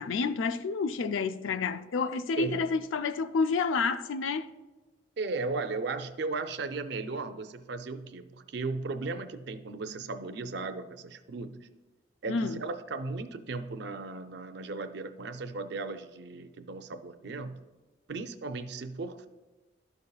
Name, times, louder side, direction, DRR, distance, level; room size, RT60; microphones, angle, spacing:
voice 1, 0.0-4.5 12.3-12.6, left 4 dB, 85° left, 0.4 m, -29 dB
voice 2, 2.4-2.7 5.2-11.7 12.2-17.6 18.1-19.3, right 3 dB, 60° right, 0.5 m, -36 dB
12.0 x 5.3 x 2.3 m
head